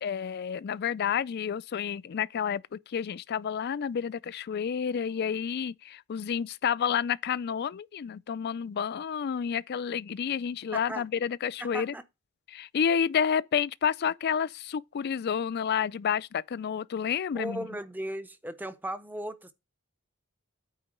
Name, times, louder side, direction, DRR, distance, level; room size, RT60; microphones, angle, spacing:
voice 1, 0.0-11.9 12.5-17.7, left 7 dB, 50° left, 0.3 m, -30 dB
voice 2, 10.7-11.0 11.6-12.0 17.3-19.5, right 1 dB, 10° right, 0.7 m, -36 dB
8.9 x 3.9 x 6.5 m
head